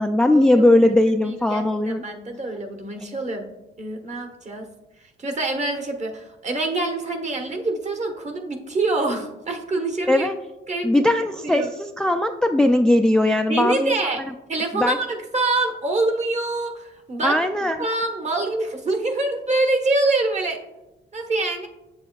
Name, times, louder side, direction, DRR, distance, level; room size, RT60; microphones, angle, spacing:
voice 1, 0.0-2.0 3.0-3.1 10.1-10.3 10.8-13.9 14.7-15.0 17.2-17.8, left 1 dB, 5° left, 6 dB, 0.3 m, -19 dB
voice 2, 1.5-3.5 3.8-4.7 5.2-10.3 10.7-11.1 11.4-11.7 13.5-14.2 14.5-17.4 17.8-20.6 21.1-21.7, right 2 dB, 35° right, 3 dB, 1.2 m, -25 dB
8.0 x 6.9 x 2.3 m, 0.99 s
cardioid pair, 90°, 20 cm